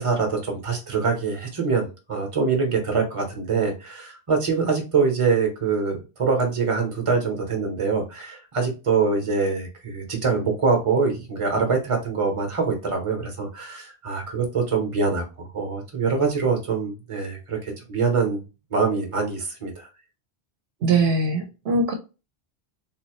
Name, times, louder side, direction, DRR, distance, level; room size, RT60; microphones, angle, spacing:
voice 1, 0.0-18.4 18.7-19.8, right 4 dB, 30° right, 3 dB, 1.0 m, -24 dB
voice 2, 20.8-21.9, right 3 dB, 80° right, 5 dB, 1.0 m, -21 dB
3.7 x 2.8 x 3.0 m, 0.30 s
omnidirectional pair, 1.0 m